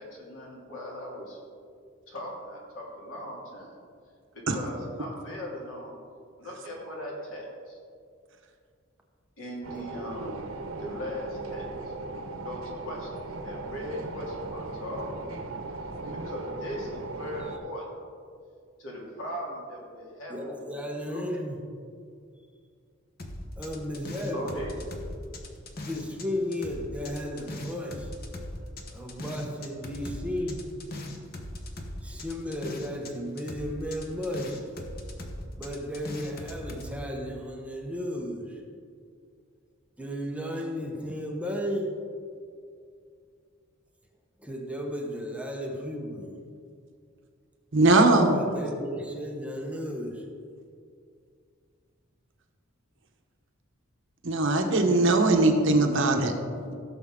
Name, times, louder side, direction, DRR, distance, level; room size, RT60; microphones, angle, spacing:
voice 1, 0.0-1.4 2.1-3.7 4.3-5.9 6.4-7.8 9.4-10.4 10.8-11.9 12.4-15.4 16.2-17.8 18.8-20.6 21.1-21.3 24.3-24.8, left 1 dB, 70° left, -3 dB, 2.9 m, -39 dB
sound 1, 9.6-17.6, right 2 dB, 85° right, 0.9 m, -38 dB
voice 2, 20.3-21.6 23.6-24.6 25.8-28.1 28.9-30.7 32.0-34.6 35.6-38.6 40.0-41.9 44.4-46.4 48.3-50.3, equal, 5° right, 0 dB, 1.0 m, -34 dB
sound 2, 23.2-26.3 26.5-33.1 33.4-36.9, left 1 dB, 45° left, 1.1 m, -39 dB
voice 3, 47.7-48.4 54.2-56.3, right 2 dB, 65° right, 4 dB, 1.1 m, -20 dB
16.0 x 6.9 x 3.8 m, 2.3 s
head